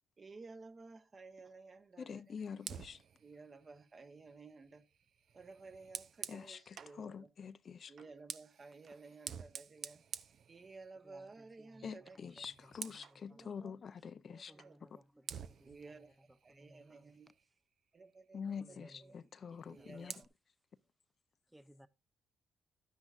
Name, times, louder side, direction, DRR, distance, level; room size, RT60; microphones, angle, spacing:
voice 1, 0.2-2.2 3.2-4.9 5.3-7.3 7.9-10.0 10.5-12.4 13.3-13.7 14.3-14.8 15.6-17.3 17.9-19.2 19.7-20.2, right 3 dB, 35° right, 1.2 m, -55 dB
voice 2, 2.0-3.0 6.3-7.9 11.8-14.5 18.3-20.1, left 6 dB, 50° left, 0.5 m, -46 dB
Fire, 2.6-7.0 7.9-11.2 11.5-11.8 12.1-13.2 14.6-14.7 15.3-17.6 19.5-20.3, right 7 dB, 55° right, 0.6 m, -50 dB
voice 3, 11.0-11.9 12.2-13.5 14.5-16.1 16.5-17.2 18.6-19.2 19.5-20.3 21.5-21.9, equal, 5° right, 0.7 m, -63 dB
12.0 x 9.9 x 2.5 m
cardioid pair, 90°, 0 cm